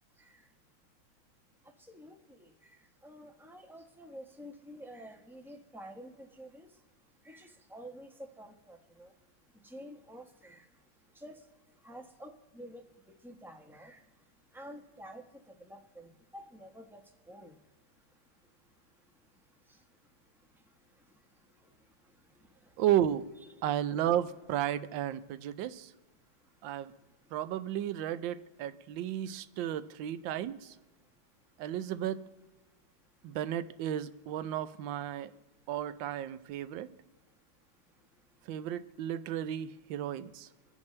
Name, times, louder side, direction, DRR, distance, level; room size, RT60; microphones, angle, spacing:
voice 1, 1.9-2.7 3.0-6.7 7.2-8.1 8.4-9.1 9.6-10.6 11.1-11.4 11.8-12.8 13.2-14.0 14.5-15.2 15.7-17.0 17.3-17.5, equal, ahead, 3 dB, 0.6 m, -49 dB
voice 2, 22.8-23.3 23.6-25.9 26.6-26.9 27.3-30.7 31.6-32.2 33.2-35.3 35.7-36.9 38.5-40.5, right 11 dB, 70° right, 14 dB, 1.3 m, -33 dB
26.0 x 10.5 x 3.2 m, 1.3 s
omnidirectional pair, 2.4 m